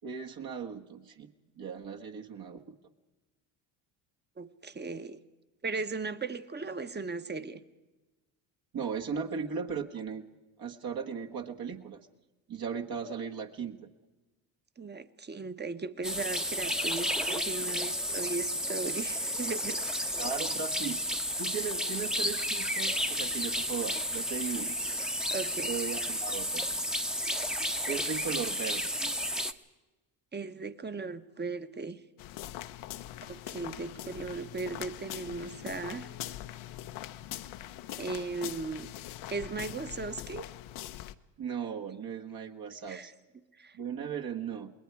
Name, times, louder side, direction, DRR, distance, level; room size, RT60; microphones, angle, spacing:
voice 1, 0.0-1.3 1.6-2.7 8.7-10.3 10.6-12.0 12.5-13.9 18.9-19.0 20.2-21.0 21.4-24.8 25.7-26.7 27.9-28.9 41.4-43.1 43.7-44.7, right 6 dB, 45° right, 2 dB, 1.6 m, -37 dB
voice 2, 4.4-5.2 5.6-7.6 14.8-19.8 25.3-25.7 30.3-32.0 33.2-36.1 38.0-38.9 39.3-40.5 42.9-43.1 43.6-43.8, right 4 dB, 20° right, 11 dB, 1.2 m, -37 dB
sound 1, 16.0-29.5, equal, ahead, 1.0 m, -32 dB
sound 2, 32.2-41.2, left 13 dB, 70° left, 1.0 m, -42 dB
28.5 x 20.5 x 4.7 m, 1.1 s
supercardioid pair, 90°, 49 cm